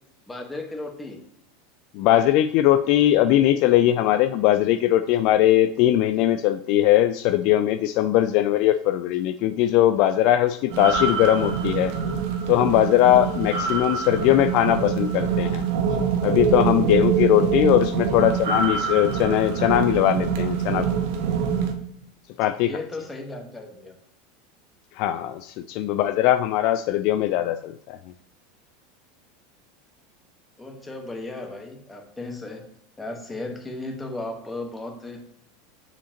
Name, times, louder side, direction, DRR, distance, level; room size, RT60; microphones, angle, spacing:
voice 1, 0.3-1.2 22.6-24.0 30.6-32.6 33.0-35.2, left 2 dB, 10° left, 3 dB, 1.3 m, -35 dB
voice 2, 1.9-11.9 12.5-15.6 16.2-20.9 22.4-22.8 25.0-28.0, left 13 dB, 60° left, 10 dB, 0.3 m, -20 dB
sound 1, 10.7-21.7, right 6 dB, 65° right, 0.9 m, -25 dB
6.8 x 5.0 x 2.9 m, 0.72 s
hypercardioid pair, 95°, 0 cm